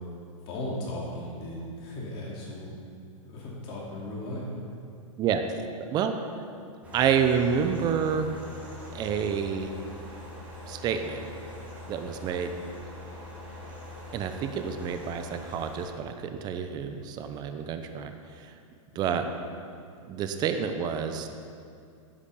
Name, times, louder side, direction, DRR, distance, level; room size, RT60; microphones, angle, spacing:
voice 1, 0.5-2.7 3.2-4.4 18.9-19.3, left 1 dB, 35° left, -5 dB, 2.8 m, -37 dB
sound 1, 6.8-15.8, left 1 dB, 10° right, 3.5 m, -43 dB
voice 2, 6.9-8.4 8.9-9.7 10.7-11.3 11.9-12.5 14.1-18.6 18.9-19.3 20.1-21.3, right 7 dB, 25° right, 7 dB, 0.7 m, -28 dB
10.5 x 8.3 x 6.9 m, 2.4 s
hypercardioid pair, 140°, 17 cm